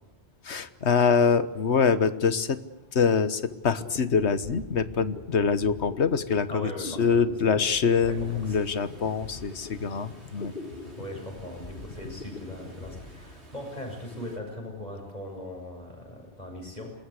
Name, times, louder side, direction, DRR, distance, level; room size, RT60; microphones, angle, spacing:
voice 1, 0.4-2.6 2.9-10.5, left 6 dB, 85° left, 14 dB, 1.5 m, -24 dB
sound 1, 3.5-14.0, left 2 dB, 55° left, 1.9 m, -43 dB
voice 2, 6.5-7.5 8.4-8.6 11.0-16.9, left 1 dB, 40° left, 1 dB, 7.4 m, -39 dB
Water, 8.0-14.4, right 1 dB, 85° right, 5.7 m, -53 dB
27.5 x 21.0 x 8.2 m, 0.92 s
omnidirectional pair, 1.1 m